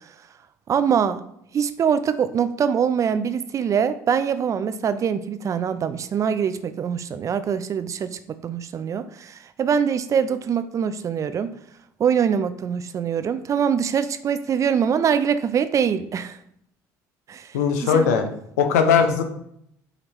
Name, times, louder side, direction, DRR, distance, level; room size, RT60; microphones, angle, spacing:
voice 1, 0.7-1.2 1.5-11.5 12.0-16.4 17.3-18.1, right 7 dB, 40° right, 12 dB, 0.4 m, -23 dB
voice 2, 17.5-18.2 18.6-19.2, left 6 dB, 85° left, 7 dB, 0.6 m, -19 dB
5.0 x 2.8 x 3.1 m, 0.73 s
hypercardioid pair, 70°, 8 cm